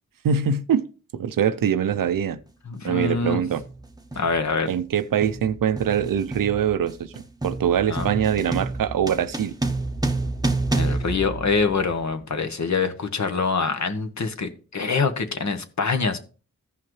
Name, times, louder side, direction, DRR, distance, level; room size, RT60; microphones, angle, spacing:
voice 1, 0.2-0.8 1.1-2.4 2.8-3.6 4.7-9.6, right 8 dB, 90° right, 0.6 m, -23 dB
sound 1, 1.9-2.1 3.0-3.3 3.6-12.1, right 2 dB, 10° right, 0.9 m, -29 dB
voice 2, 2.7-3.4 4.1-4.7 7.9-8.2 10.7-16.2, left 4 dB, 55° left, 1.1 m, -25 dB
14.5 x 5.7 x 3.1 m
cardioid pair, 60°, 33 cm